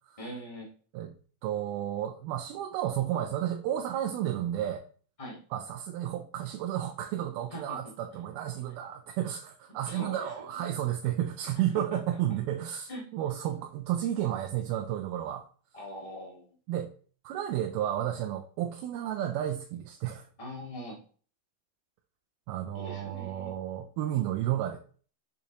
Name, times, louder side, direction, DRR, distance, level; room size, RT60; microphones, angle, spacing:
voice 1, 0.2-0.7 5.2-5.4 7.5-7.9 9.7-10.7 12.9-13.1 15.7-16.5 20.4-21.0 22.7-23.5, equal, 50° left, -3 dB, 0.4 m, -42 dB
voice 2, 1.4-4.8 5.5-15.5 16.7-16.9 17.2-20.3 22.5-24.8, right 11 dB, 85° right, 3 dB, 2.6 m, -32 dB
7.0 x 6.4 x 3.0 m, 0.41 s
omnidirectional pair, 4.3 m